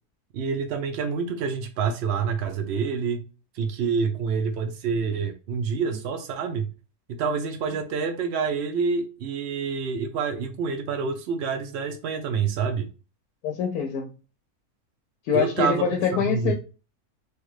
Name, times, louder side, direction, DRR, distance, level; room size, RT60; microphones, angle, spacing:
voice 1, 0.3-3.2 3.5-6.7 7.1-12.9 15.3-16.5, right 5 dB, 65° right, 0.6 m, -27 dB
voice 2, 13.4-14.1 15.2-16.5, left 7 dB, 90° left, 1.1 m, -25 dB
3.2 x 2.3 x 3.1 m
omnidirectional pair, 1.6 m